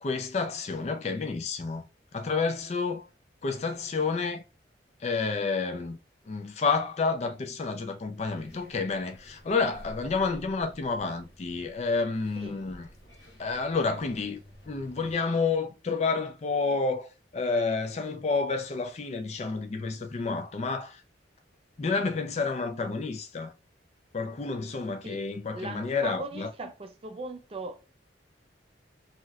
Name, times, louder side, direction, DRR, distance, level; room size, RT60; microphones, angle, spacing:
voice 1, 0.0-1.8 2.1-3.0 3.4-4.4 5.0-6.0 6.3-12.9 13.4-21.0 21.8-23.5 24.1-26.5, left 4 dB, 35° left, 0.4 m, -30 dB
sound 1, 8.2-15.1, equal, 70° left, 1.0 m, -52 dB
voice 2, 25.5-27.8, right 3 dB, 30° right, 0.4 m, -39 dB
3.0 x 2.8 x 2.3 m
head